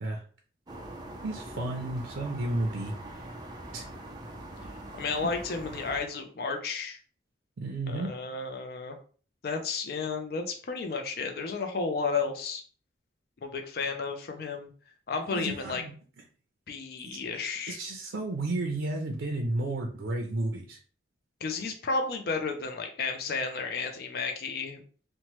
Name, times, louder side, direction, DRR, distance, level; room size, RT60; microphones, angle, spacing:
sound 1, 0.7-6.2, right 1 dB, 20° right, 0.4 m, -43 dB
voice 1, 1.2-2.9 3.7-3.8 7.6-8.1 15.3-15.9 17.0-17.2 17.7-20.8, right 2 dB, 90° right, 2 dB, 0.5 m, -32 dB
voice 2, 5.0-7.0 7.9-9.0 9.4-12.6 13.4-14.7 15.1-15.8 16.7-17.8 21.4-24.8, left 4 dB, 55° left, 4 dB, 0.4 m, -32 dB
2.9 x 2.1 x 2.9 m, 0.41 s
head